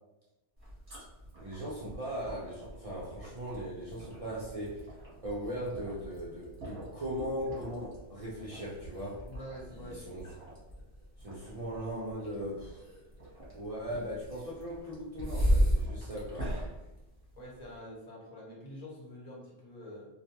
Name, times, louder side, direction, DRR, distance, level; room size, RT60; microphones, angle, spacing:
sound 1, 0.6-17.8, equal, 35° right, 0.9 m, -37 dB
voice 1, 1.4-4.9 5.2-9.2 9.7-10.3 11.2-12.8 13.5-16.5, equal, 65° right, -6 dB, 0.3 m, -39 dB
voice 2, 9.3-10.1 17.4-20.1, left 1 dB, 40° left, -6 dB, 0.9 m, -46 dB
2.4 x 2.2 x 2.8 m, 1.0 s
omnidirectional pair, 1.2 m